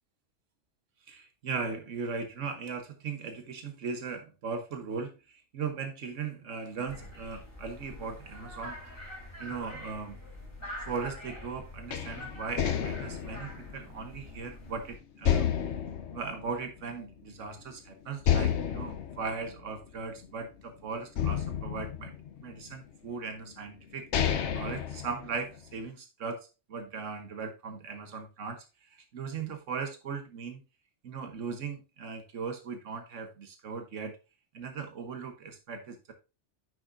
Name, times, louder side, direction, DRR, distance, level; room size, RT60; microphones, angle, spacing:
voice 1, 1.1-8.8 9.4-10.2 10.9-15.5 16.1-22.1 22.4-24.1 24.5-28.6 29.1-30.6 31.0-34.2 34.5-36.1, right 5 dB, 85° right, 6 dB, 1.4 m, -38 dB
sound 1, 6.9-15.0, left 1 dB, 50° left, 4.3 m, -45 dB
sound 2, 11.9-14.7 15.2-17.2 17.5-17.6 18.2-20.6 21.2-22.7 23.5-23.6 23.9-25.7, left 9 dB, 70° left, 1.0 m, -31 dB
8.9 x 6.1 x 2.6 m, 0.28 s
omnidirectional pair, 1.2 m